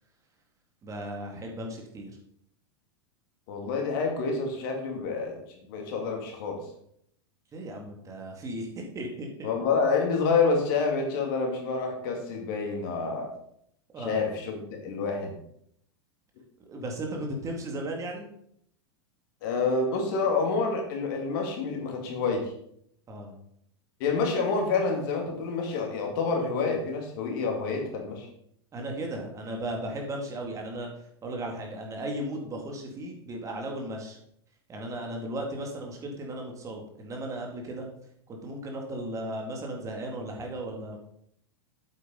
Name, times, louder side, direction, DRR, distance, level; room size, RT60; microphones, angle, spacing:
voice 1, 0.8-2.1 7.5-9.5 13.9-14.2 16.7-18.3 23.1-23.3 28.7-30.9 31.2-34.2 34.7-37.9 38.3-41.0, right 1 dB, 25° right, 1 dB, 2.3 m, -36 dB
voice 2, 3.5-5.4 5.7-6.6 9.4-13.3 14.0-15.3 19.4-22.5 24.0-28.3, left 4 dB, 50° left, 2 dB, 2.5 m, -28 dB
9.1 x 8.1 x 4.0 m, 0.70 s
figure-of-eight pair, 90°, 14 cm